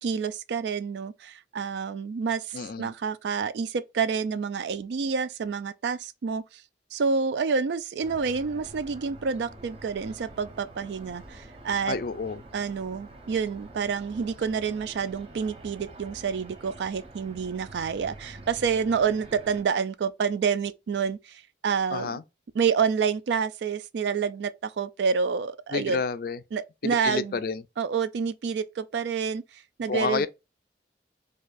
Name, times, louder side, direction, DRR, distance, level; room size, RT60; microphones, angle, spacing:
voice 1, 0.0-6.6 6.9-12.0 12.5-22.2 22.5-26.0 26.5-27.4 27.8-30.3, right 6 dB, 70° right, 0.3 m, -28 dB
voice 2, 2.5-2.9 11.9-12.4 21.9-22.2 25.7-26.4 26.8-27.6 29.9-30.3, left 5 dB, 55° left, 0.3 m, -29 dB
sound 1, 8.0-19.6, right 1 dB, 30° right, 0.7 m, -47 dB
4.5 x 2.4 x 2.4 m
head